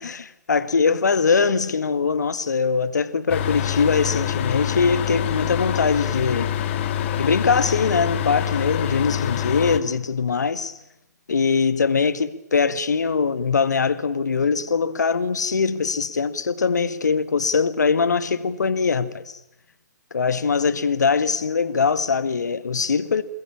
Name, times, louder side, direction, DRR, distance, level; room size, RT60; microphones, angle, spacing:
voice 1, 0.0-6.5 7.2-10.8 11.3-19.4 20.1-23.2, left 5 dB, 70° left, 1.9 m, -22 dB
sound 1, 3.3-9.8, left 10 dB, 40° left, 2.3 m, -25 dB
28.0 x 20.5 x 8.7 m
figure-of-eight pair, 125°, 10 cm